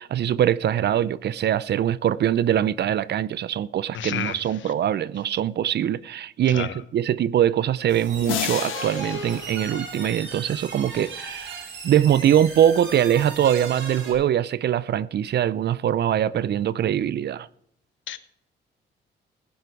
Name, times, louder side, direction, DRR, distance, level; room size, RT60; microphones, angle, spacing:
voice 1, 0.0-17.5, right 10 dB, 55° right, 0.6 m, -23 dB
voice 2, 3.9-4.4 6.5-6.7 18.1-18.2, left 10 dB, 70° left, 1.1 m, -29 dB
sound 1, 7.9-14.1, right 4 dB, 75° right, 5.4 m, -37 dB
sound 2, 8.2-10.7, left 10 dB, 85° left, 1.3 m, -33 dB
16.0 x 10.5 x 4.8 m
cardioid pair, 90°, 20 cm